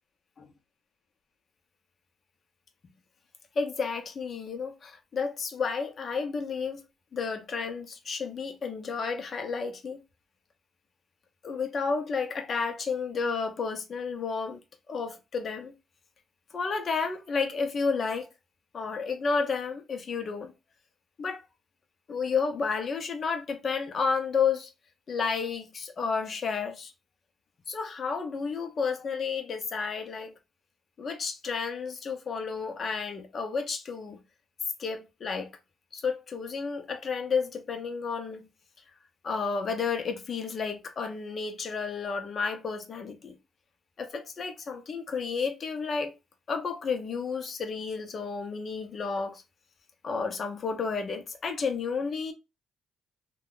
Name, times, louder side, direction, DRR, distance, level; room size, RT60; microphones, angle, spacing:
voice 1, 3.6-6.8 7.1-10.0 11.4-14.6 14.9-15.7 16.5-18.3 18.7-20.5 21.2-21.4 22.1-24.7 25.1-26.9 27.7-30.3 31.0-34.2 34.8-35.5 35.9-38.5 39.2-43.3 44.0-46.1 46.5-49.4 50.0-52.3, left 5 dB, 50° left, 0.7 m, -31 dB
2.8 x 2.3 x 3.8 m
cardioid pair, 90°, 0 cm